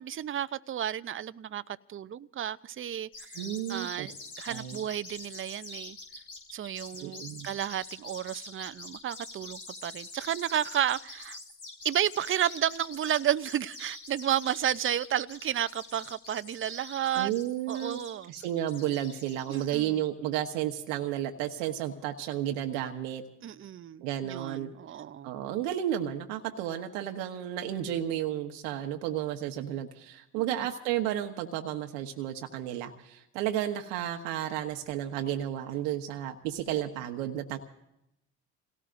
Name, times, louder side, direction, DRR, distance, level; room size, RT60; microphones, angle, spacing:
voice 1, 0.0-1.6 1.9-3.4 3.7-6.0 6.5-11.4 11.8-17.3 17.7-18.3 19.5-20.0 23.4-25.3 30.4-30.7, right 10 dB, 35° right, 0.6 m, -32 dB
sound 1, 3.1-19.6, left 2 dB, 90° left, 5.9 m, -45 dB
voice 2, 3.3-4.1 4.5-4.8 7.0-7.5 17.2-18.0 18.3-23.2 24.0-24.7 25.2-37.6, right 11 dB, 80° right, 1.2 m, -32 dB
28.0 x 18.0 x 2.6 m
hypercardioid pair, 60°, 37 cm